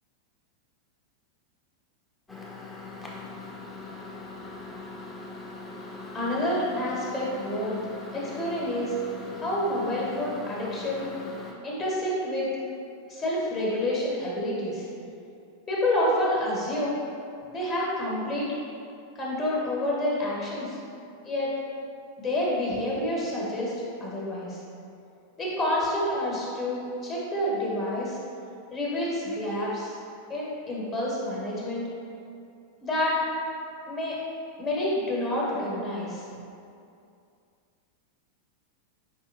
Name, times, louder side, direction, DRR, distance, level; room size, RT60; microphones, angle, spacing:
Microwave oven, 2.3-11.5, left 3 dB, 15° left, 0.6 m, -41 dB
voice 1, 6.1-7.7 8.1-9.0 9.4-11.1 11.6-12.4 13.1-14.9 15.7-17.0 17.5-18.5 19.1-20.8 21.2-21.5 22.2-23.7 24.0-24.6 25.4-28.2 28.7-30.0 30.3-31.9 32.8-33.2 33.9-34.2 34.6-36.2, left 1 dB, 30° left, -6 dB, 1.3 m, -28 dB
4.8 x 3.5 x 2.9 m, 2.5 s
figure-of-eight pair, 90°, 0 cm